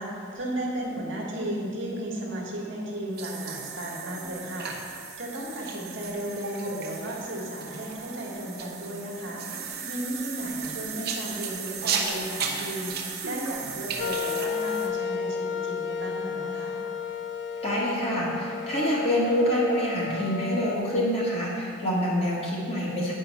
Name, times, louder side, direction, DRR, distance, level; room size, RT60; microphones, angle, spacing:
voice 1, 0.0-4.9 5.2-9.4 9.8-12.9 13.2-16.8, right 1 dB, 65° right, -2 dB, 1.5 m, -34 dB
sound 1, 3.1-14.9, right 5 dB, 50° right, 0.8 m, -35 dB
sound 2, 14.0-20.8, left 6 dB, 55° left, 0.3 m, -33 dB
voice 2, 17.6-23.1, equal, 30° left, -6 dB, 1.7 m, -26 dB
8.1 x 5.4 x 5.6 m, 2.3 s
head